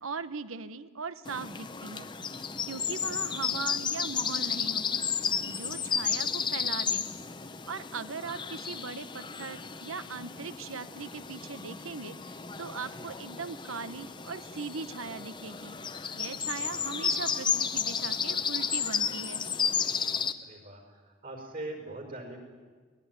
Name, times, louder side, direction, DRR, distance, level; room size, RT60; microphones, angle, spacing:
voice 1, 0.0-2.1 2.6-5.0 5.5-7.0 7.6-15.8 16.1-19.4, right 4 dB, 80° right, 14 dB, 1.0 m, -39 dB
sound 1, 1.3-20.3, left 6 dB, 20° left, 0.8 m, -33 dB
voice 2, 5.8-6.1 12.8-13.1 16.5-16.9 20.4-22.4, right 2 dB, 45° right, 4 dB, 5.2 m, -43 dB
23.0 x 19.0 x 9.6 m, 1.5 s
head